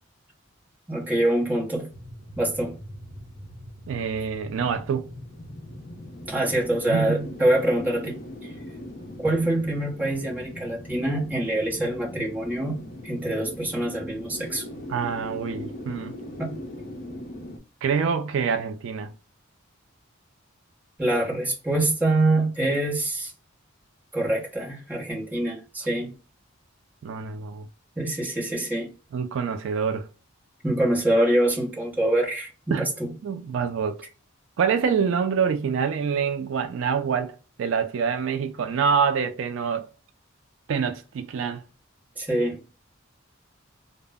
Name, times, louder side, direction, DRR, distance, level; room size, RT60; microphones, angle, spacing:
voice 1, 0.9-1.9 2.4-2.8 6.3-8.5 9.2-14.7 16.4-16.6 21.0-23.3 24.1-26.2 28.0-28.9 30.6-33.1 42.2-42.7, right 1 dB, 10° right, 0.8 m, -25 dB
sound 1, 1.9-17.6, left 1 dB, 45° left, 0.6 m, -40 dB
voice 2, 3.9-5.1 6.9-7.3 14.9-16.2 17.8-19.1 27.0-27.7 29.1-30.1 32.7-32.8 33.2-34.0 34.6-39.9 40.7-41.6, right 6 dB, 70° right, 0.3 m, -26 dB
2.0 x 2.0 x 3.4 m
head